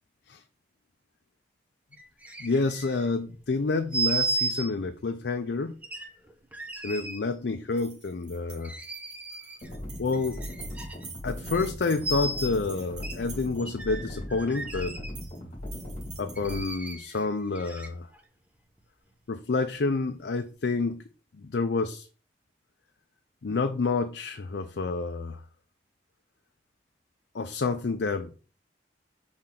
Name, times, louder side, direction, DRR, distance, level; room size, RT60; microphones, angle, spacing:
sound 1, 1.9-3.2 3.9-4.7 5.8-7.2 8.6-9.8 10.1-11.0 11.5-11.7 12.0-12.5 13.0-13.1 13.6-15.3 16.4-18.2 18.8-18.9, right 2 dB, 10° right, 0.8 m, -34 dB
voice 1, 2.4-5.8 6.8-8.7 10.0-10.4 11.2-15.0 16.2-18.1 19.3-21.0 21.4-22.1 23.4-25.4 27.3-28.3, left 3 dB, 70° left, 0.5 m, -29 dB
sound 2, 7.7-13.8 14.9-15.4 15.7-17.2, right 5 dB, 85° right, 1.9 m, -47 dB
sound 3, 9.6-16.6, left 1 dB, 40° left, 1.9 m, -39 dB
5.9 x 4.3 x 3.7 m
head